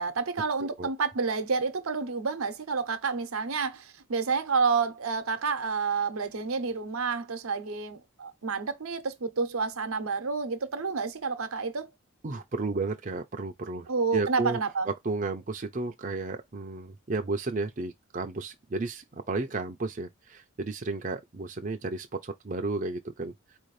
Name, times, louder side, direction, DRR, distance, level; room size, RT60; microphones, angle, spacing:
voice 1, 0.0-11.9 13.9-14.9, right 4 dB, 85° right, 0.8 m, -29 dB
voice 2, 12.2-13.9 14.1-14.6 15.0-23.3, right 3 dB, 40° right, 0.5 m, -33 dB
4.5 x 2.7 x 3.2 m
head